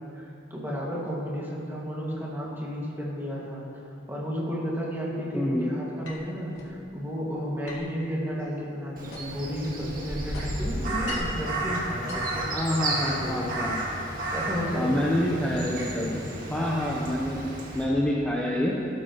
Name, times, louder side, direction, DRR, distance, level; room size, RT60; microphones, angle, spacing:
voice 1, 0.0-3.8 4.1-13.7 14.3-16.1 16.6-17.0, equal, 10° right, -5 dB, 2.1 m, -33 dB
sound 1, 6.0-6.8 7.7-9.5 9.8-11.5 11.9-13.0, left 2 dB, 85° left, 2.2 m, -42 dB
Crow, 9.0-17.8, right 1 dB, 45° right, 2.0 m, -32 dB
voice 2, 12.5-13.8 14.8-16.1 16.5-17.4 17.7-18.7, left 1 dB, 10° left, -5 dB, 0.9 m, -27 dB
16.5 x 12.5 x 3.1 m, 2.9 s
head